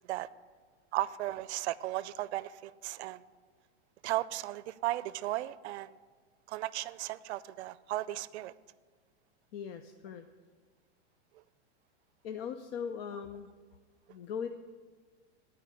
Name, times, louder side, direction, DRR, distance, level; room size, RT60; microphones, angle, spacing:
voice 1, 0.9-3.2 4.0-6.0 6.5-8.5, right 16 dB, 70° right, 18 dB, 0.5 m, -35 dB
voice 2, 9.5-10.2 12.2-13.5 14.1-14.5, left 7 dB, 60° left, 8 dB, 0.6 m, -39 dB
12.0 x 4.7 x 8.4 m, 1.5 s
supercardioid pair, 145°, 34 cm